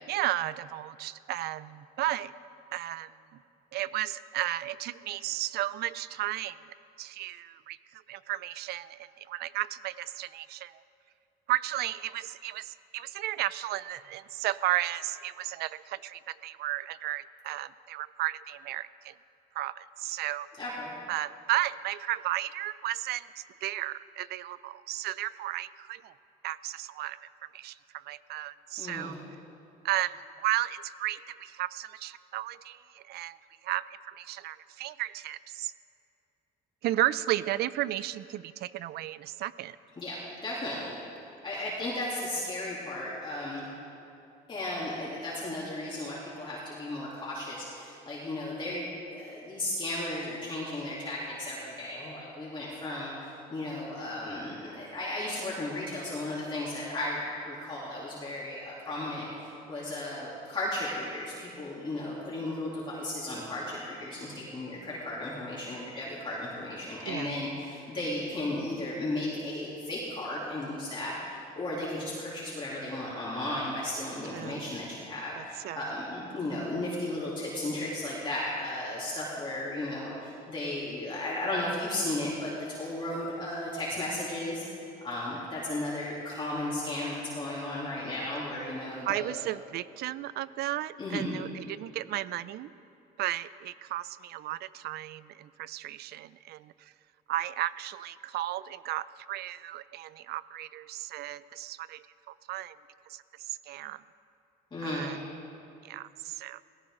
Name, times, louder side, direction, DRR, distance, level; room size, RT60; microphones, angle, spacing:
voice 1, 0.1-2.3 2.7-3.1 3.7-10.8 11.5-19.1 19.5-20.5 21.1-26.1 26.4-29.2 29.8-33.4 33.6-35.7 36.8-39.8 67.1-67.4 74.3-74.8 75.4-75.9 89.1-92.7 93.2-96.9 97.3-102.8 103.1-104.0 104.8-105.2 105.8-106.6, right 15 dB, 70° right, 17 dB, 0.5 m, -34 dB
voice 2, 20.6-20.9 28.8-29.2 40.0-40.9 41.4-43.7 44.5-53.1 53.5-89.3 91.0-91.3 104.7-105.1, left 1 dB, 30° left, -7 dB, 3.2 m, -35 dB
17.5 x 16.5 x 3.8 m, 2.7 s
cardioid pair, 110°, 17 cm